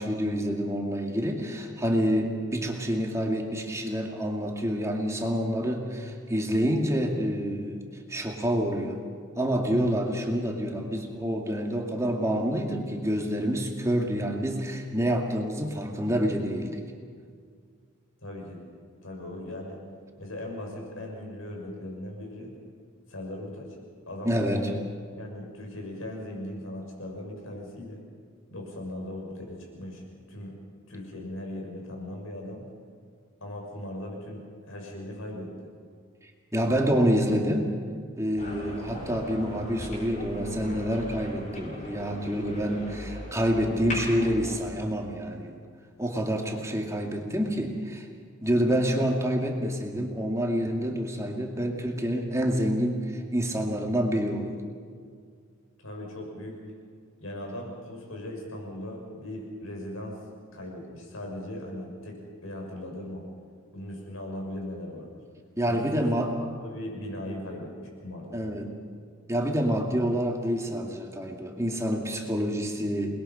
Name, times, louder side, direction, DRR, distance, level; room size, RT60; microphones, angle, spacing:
voice 1, 0.0-7.8 8.1-9.0 9.4-16.8 24.2-24.8 36.5-37.8 38.2-45.5 46.0-48.1 48.4-54.6 65.6-66.4 68.3-68.7 69.3-73.2, equal, 15° right, 1 dB, 2.3 m, -27 dB
voice 2, 18.2-18.6 19.0-19.8 20.2-22.5 23.1-23.8 24.1-24.8 25.1-28.0 28.5-30.0 30.3-30.6 30.9-32.6 33.4-35.5 55.8-56.6 57.2-60.2 60.5-63.2 63.7-65.2 65.6-65.9 66.4-68.4, left 1 dB, 80° left, 0 dB, 6.3 m, -38 dB
sound 1, 38.4-44.6, left 1 dB, 40° left, 7.3 m, -38 dB
29.0 x 21.0 x 5.7 m, 2.1 s
head